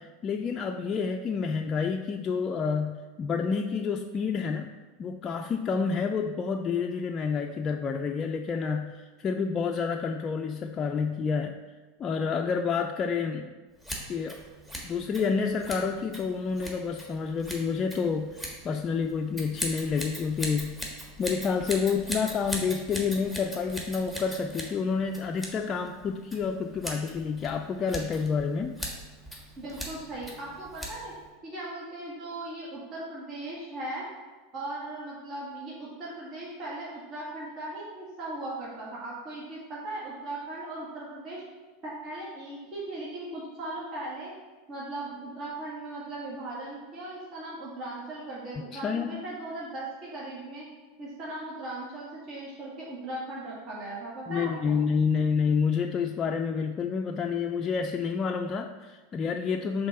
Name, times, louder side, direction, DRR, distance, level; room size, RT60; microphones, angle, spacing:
voice 1, 0.0-4.7 5.0-11.6 12.0-13.5 14.1-14.4 14.8-20.8 21.2-28.8 48.7-49.2 54.3-59.9, left 5 dB, 30° left, 3 dB, 0.3 m, -29 dB
Scissors, 13.8-31.3, equal, 10° right, 1.5 m, -40 dB
voice 2, 29.6-31.1 31.4-34.1 34.5-41.4 41.8-44.3 44.7-50.7 51.0-54.8, right 2 dB, 40° right, -6 dB, 1.8 m, -38 dB
5.2 x 3.7 x 5.7 m, 1.3 s
hypercardioid pair, 90°, 0 cm